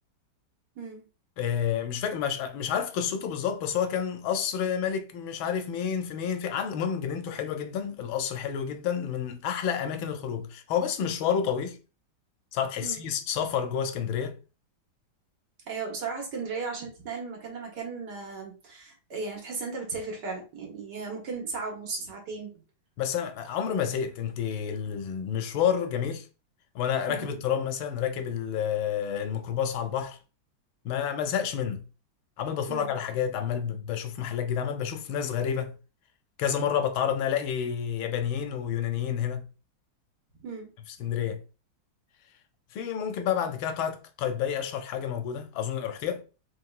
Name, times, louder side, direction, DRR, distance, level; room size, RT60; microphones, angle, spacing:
voice 1, 1.4-11.8 12.5-14.4 23.0-26.3 26.7-30.2 30.8-31.8 32.4-35.8 36.4-39.5 41.0-41.4 42.7-46.2, left 8 dB, 85° left, 1.4 m, -29 dB
voice 2, 15.7-22.6 27.1-27.4 32.7-32.9 40.4-40.7, right 4 dB, 60° right, 1.7 m, -36 dB
4.8 x 3.3 x 2.4 m
omnidirectional pair, 2.2 m